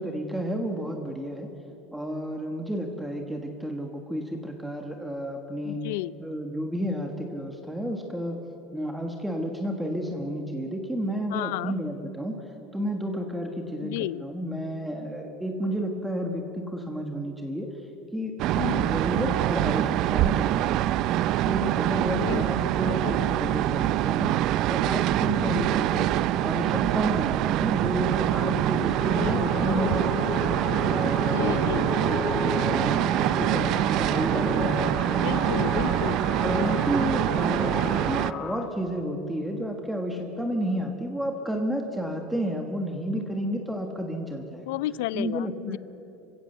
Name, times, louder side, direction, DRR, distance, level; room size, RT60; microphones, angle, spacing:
voice 1, 0.0-1.5 1.9-5.9 6.2-8.4 8.7-12.4 12.7-17.7 18.1-18.3 18.8-20.7 21.5-24.3 24.7-26.1 26.4-30.5 30.9-35.5 36.4-44.7 45.1-45.8, equal, ahead, 3 dB, 1.4 m, -31 dB
voice 2, 5.6-6.2 11.3-11.7 13.8-14.2 18.5-18.9 22.1-22.5 22.8-23.3 25.4-25.8 29.1-29.5 31.3-31.9 35.2-36.3 44.7-45.8, left 17 dB, 90° left, 20 dB, 0.5 m, -32 dB
sound 1, 18.4-38.3, right 13 dB, 45° right, 0.4 m, -25 dB
sound 2, 28.9-38.7, left 5 dB, 35° left, 1.8 m, -33 dB
26.5 x 16.0 x 8.0 m, 2.9 s
cardioid pair, 170°, 0 cm